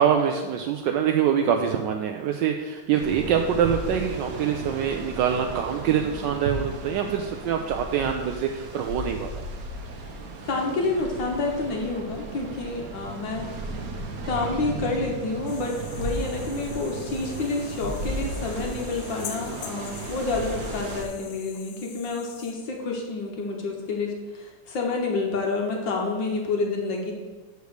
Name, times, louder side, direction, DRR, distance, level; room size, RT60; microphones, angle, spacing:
voice 1, 0.0-9.4, right 8 dB, 75° right, 4 dB, 1.0 m, -24 dB
sound 1, 2.9-21.0, right 2 dB, 55° right, 1.0 m, -35 dB
voice 2, 10.4-13.5 14.2-27.1, left 3 dB, 65° left, 0 dB, 1.7 m, -29 dB
sound 2, 15.5-22.5, left 7 dB, 90° left, 1.8 m, -44 dB
6.6 x 5.0 x 6.5 m, 1.2 s
omnidirectional pair, 2.4 m